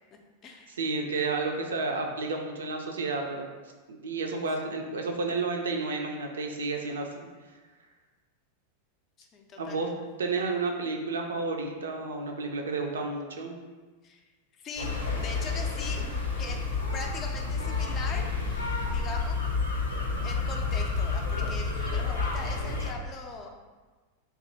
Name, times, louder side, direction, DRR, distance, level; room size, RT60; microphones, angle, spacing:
voice 1, 0.1-0.8 9.2-9.9 14.0-14.2 14.6-16.0 16.4-16.6 16.9-19.5 20.2-23.5, left 3 dB, 30° left, 3 dB, 0.4 m, -41 dB
voice 2, 0.8-3.5 3.9-7.1 9.6-9.9 10.2-13.6, right 3 dB, 65° right, 2 dB, 0.4 m, -31 dB
sound 1, 14.8-22.9, left 4 dB, 80° left, 0.5 m, -30 dB
2.6 x 2.4 x 3.8 m, 1.3 s
figure-of-eight pair, 90°, 0 cm